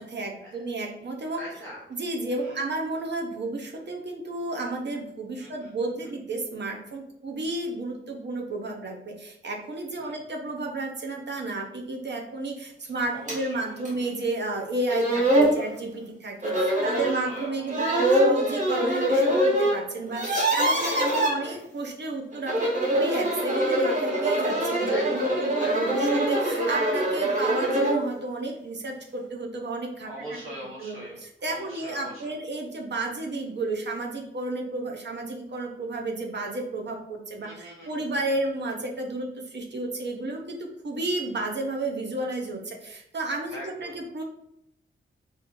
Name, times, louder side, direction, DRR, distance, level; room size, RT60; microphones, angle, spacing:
voice 1, 0.0-1.4 1.9-30.1 30.8-44.2, right 2 dB, 60° right, 1 dB, 0.8 m, -32 dB
voice 2, 1.4-1.8 2.4-2.6 5.4-5.7 10.0-10.2 13.1-14.0 15.2-15.7 16.8-18.1 20.6-21.6 24.8-26.1 30.0-31.2 31.5-32.3 37.4-38.2 43.5-43.9, equal, 80° right, -7 dB, 1.3 m, -41 dB
sound 1, 13.3-13.4 13.8-13.9 14.6-14.7 14.9-15.5 16.4-17.2 17.7-19.7 20.0-21.3 22.3-28.0, right 1 dB, 35° right, 1.2 m, -23 dB
4.5 x 2.7 x 3.6 m, 0.76 s
wide cardioid pair, 125°, 21 cm